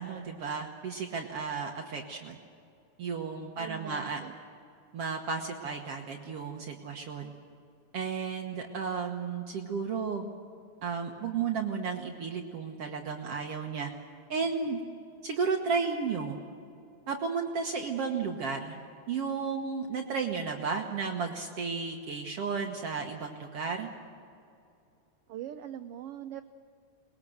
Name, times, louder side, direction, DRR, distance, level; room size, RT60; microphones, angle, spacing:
voice 1, 0.0-2.4 3.0-4.2 4.9-7.3 7.9-10.3 10.8-13.9 14.3-14.8 15.2-16.4 17.1-18.8 19.1-23.9, right 5 dB, 60° right, 2 dB, 2.0 m, -33 dB
voice 2, 3.6-4.4 25.3-26.4, right 11 dB, 85° right, 9 dB, 1.3 m, -41 dB
22.5 x 20.5 x 7.9 m, 2.5 s
omnidirectional pair, 3.4 m